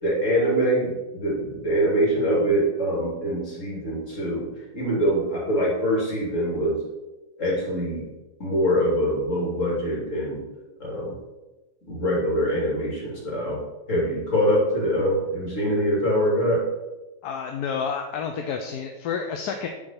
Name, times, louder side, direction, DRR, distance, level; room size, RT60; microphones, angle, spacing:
voice 1, 0.0-4.5 4.7-6.8 7.4-8.0 8.4-10.4 10.8-11.1 11.8-13.6 13.9-16.6, equal, 45° left, -4 dB, 3.0 m, -24 dB
voice 2, 17.2-19.7, left 6 dB, 70° left, 4 dB, 1.1 m, -29 dB
8.6 x 4.6 x 5.8 m, 1.1 s
omnidirectional pair, 1.9 m